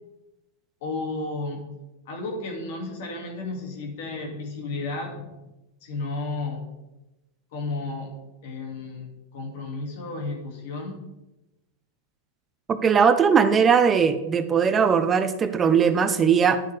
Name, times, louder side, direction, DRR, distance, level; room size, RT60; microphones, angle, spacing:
voice 1, 0.8-1.6 2.1-5.4 5.8-6.7 7.5-8.1 8.4-11.0, left 3 dB, 65° left, 1 dB, 2.2 m, -33 dB
voice 2, 12.7-16.6, right 6 dB, 25° right, 10 dB, 0.7 m, -19 dB
10.0 x 6.5 x 3.4 m, 1.0 s
hypercardioid pair, 120°, 0 cm